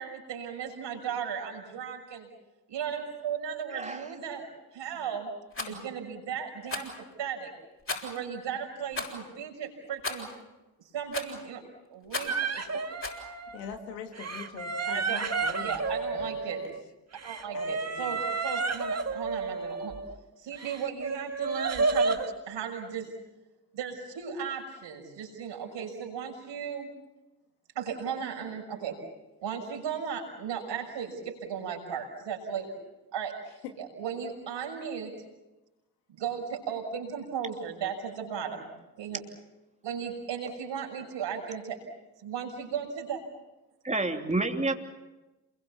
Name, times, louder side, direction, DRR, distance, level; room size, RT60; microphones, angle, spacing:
voice 1, 0.0-2.3 2.7-4.5 4.7-5.3 5.6-6.9 7.2-7.5 8.0-10.3 10.9-11.6 11.9-12.8 14.9-15.2 15.6-16.6 17.2-20.0 20.4-22.2 22.5-23.1 23.7-26.9 27.8-29.0 29.4-32.7 33.1-33.3 33.8-35.1 36.2-38.6 39.0-39.2 39.8-41.8 42.2-43.2, right 7 dB, 65° right, 6.3 m, -36 dB
voice 2, 3.7-4.0 43.8-44.7, right 2 dB, 15° right, 3.1 m, -29 dB
Rattle, 5.5-5.7 6.7-7.0 7.9-8.2 8.9-9.2 10.0-10.3 11.1-11.4 12.1-12.4 13.0-13.2, left 2 dB, 25° left, 7.2 m, -35 dB
sound 1, 12.3-13.7 14.1-16.8 17.1-20.1 20.6-22.3, right 4 dB, 30° right, 2.1 m, -31 dB
voice 3, 13.5-15.8 16.1-16.7 17.5-18.2 33.6-33.7, left 6 dB, 85° left, 2.1 m, -43 dB
28.5 x 22.5 x 7.2 m
hypercardioid pair, 45°, 47 cm